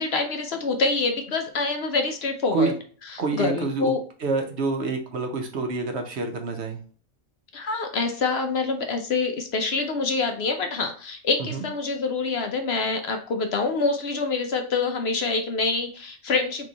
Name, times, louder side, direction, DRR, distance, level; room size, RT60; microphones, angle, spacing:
voice 1, 0.0-2.7 3.1-4.0 7.5-16.7, left 4 dB, 60° left, 5 dB, 0.8 m, -26 dB
voice 2, 3.2-3.9 4.2-6.8 11.4-11.7, right 3 dB, 60° right, 4 dB, 0.9 m, -27 dB
3.6 x 3.2 x 3.9 m, 0.41 s
omnidirectional pair, 1.4 m